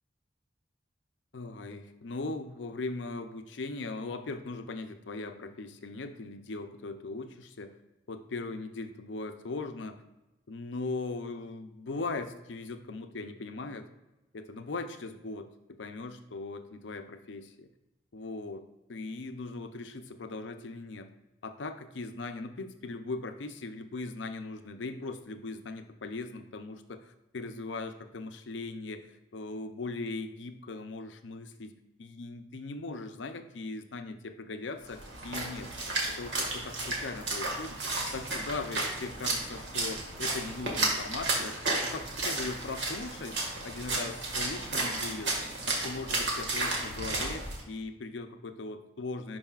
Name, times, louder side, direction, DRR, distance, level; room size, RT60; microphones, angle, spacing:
voice 1, 1.3-7.8 8.1-10.0 10.5-13.9 14.3-15.5 15.8-17.7 18.1-21.1 21.4-31.7 32.0-35.7 36.1-37.8 38.1-41.6 41.8-45.4 45.7-49.4, left 3 dB, 90° left, 8 dB, 0.6 m, -39 dB
Splash splatter, 34.9-47.6, right 2 dB, 80° right, 1.7 m, -33 dB
11.0 x 4.8 x 2.4 m, 1.0 s
head